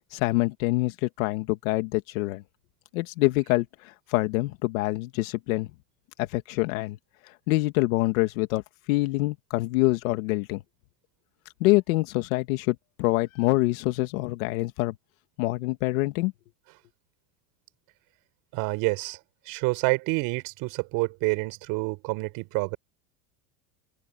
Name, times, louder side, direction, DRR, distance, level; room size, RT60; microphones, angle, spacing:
voice 1, 0.1-2.4 2.9-5.7 6.2-7.0 7.5-8.6 8.9-10.6 11.6-15.0 15.4-16.3, left 21 dB, 80° left, 2.0 m, -25 dB
voice 2, 18.5-19.2 19.5-22.8, right 25 dB, 60° right, 4.5 m, -28 dB
open air
cardioid pair, 150°, 40 cm